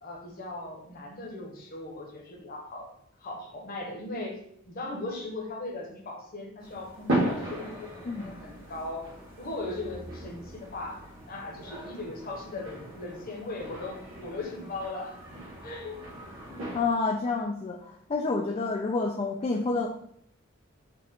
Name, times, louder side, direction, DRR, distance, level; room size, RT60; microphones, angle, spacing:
voice 1, 0.0-2.9 3.2-4.4 4.7-9.1 9.4-16.0 18.5-18.7, left 2 dB, 45° left, 0 dB, 1.0 m, -38 dB
sound 1, 6.6-16.8, right 1 dB, 70° right, 1.5 m, -37 dB
voice 2, 8.0-8.4 16.5-17.8 18.1-19.9, left 3 dB, 30° left, 0 dB, 0.3 m, -29 dB
4.6 x 2.4 x 3.6 m, 0.69 s
head